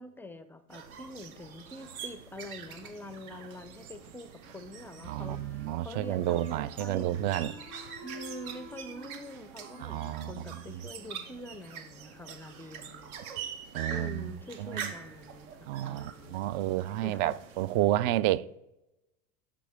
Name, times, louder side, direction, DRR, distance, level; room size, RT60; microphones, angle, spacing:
voice 1, 0.0-7.2 8.0-13.2 13.9-15.5 15.8-16.4 17.0-17.3, left 1 dB, 5° left, 0.4 m, -45 dB
sound 1, 0.7-18.0, right 7 dB, 70° right, 1.2 m, -45 dB
Wind instrument woodwind instrument, 4.9-11.6, equal, 90° right, 3.0 m, -50 dB
voice 2, 5.1-7.5 9.8-10.3 13.7-14.3 14.6-14.9 15.7-18.6, right 14 dB, 55° right, 0.5 m, -30 dB
sound 2, 12.7-13.1 15.9-16.2, right 7 dB, 35° right, 3.0 m, -54 dB
13.0 x 5.1 x 3.5 m
hypercardioid pair, 100°, 43 cm